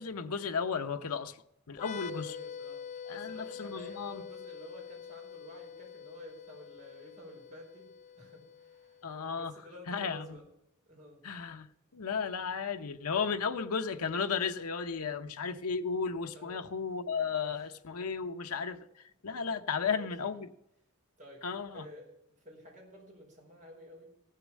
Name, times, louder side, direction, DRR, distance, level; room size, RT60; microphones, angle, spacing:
voice 1, 0.0-1.4 1.7-2.3 3.1-4.2 9.0-9.5 9.9-10.3 11.2-11.7 11.9-18.8 19.2-20.5 21.4-21.8, left 5 dB, 85° left, 0.8 m, -34 dB
sound 1, 1.7-9.2, left 7 dB, 30° left, 0.4 m, -46 dB
voice 2, 1.9-10.4 10.9-11.2 16.3-16.7 17.4-17.7 19.7-20.4 21.2-21.5 21.7-24.1, equal, 35° right, 5.1 m, -52 dB
16.0 x 6.8 x 7.3 m
head